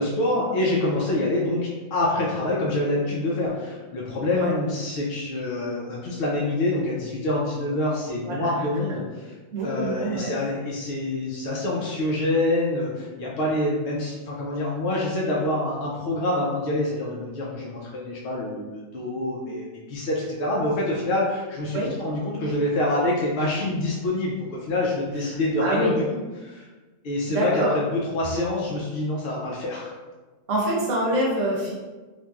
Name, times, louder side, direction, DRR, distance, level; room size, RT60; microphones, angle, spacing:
voice 1, 0.0-9.3 9.6-26.7 27.0-29.9, left 1 dB, 65° left, -4 dB, 0.5 m, -26 dB
voice 2, 9.5-10.3 21.7-21.9 25.6-26.0 27.3-27.7 30.5-31.7, right 1 dB, 70° right, -4 dB, 1.0 m, -25 dB
3.0 x 2.5 x 2.3 m, 1.3 s
omnidirectional pair, 1.4 m